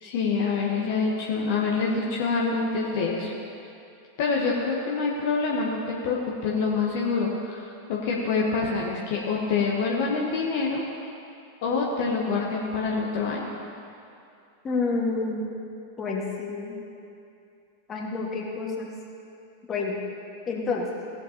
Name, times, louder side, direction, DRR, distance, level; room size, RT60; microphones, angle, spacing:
voice 1, 0.0-3.3 4.2-5.8 6.0-6.2 6.4-10.8 11.6-13.5, left 4 dB, 50° left, -3 dB, 1.1 m, -26 dB
voice 2, 14.6-15.5 16.0-16.8 17.9-18.9 19.7-20.0 20.5-20.9, left 3 dB, 25° left, -2 dB, 1.7 m, -28 dB
17.0 x 8.0 x 2.9 m, 2.6 s
figure-of-eight pair, 90°, 0 cm